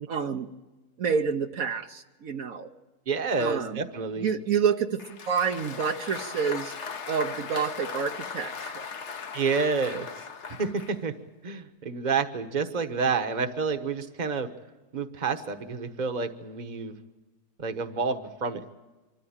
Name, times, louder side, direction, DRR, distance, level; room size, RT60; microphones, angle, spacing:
voice 1, 0.1-0.5 1.0-2.7 3.4-3.8 4.2-6.7 7.1-8.9, right 6 dB, 65° right, 5 dB, 1.3 m, -28 dB
voice 2, 3.1-4.3 9.3-10.1 10.6-11.1 11.4-14.5 14.9-16.9 17.6-18.6, right 5 dB, 30° right, 8 dB, 1.2 m, -29 dB
Applause, 5.0-11.0, left 5 dB, 50° left, 1.3 m, -38 dB
25.5 x 13.5 x 8.8 m, 1.2 s
omnidirectional pair, 1.6 m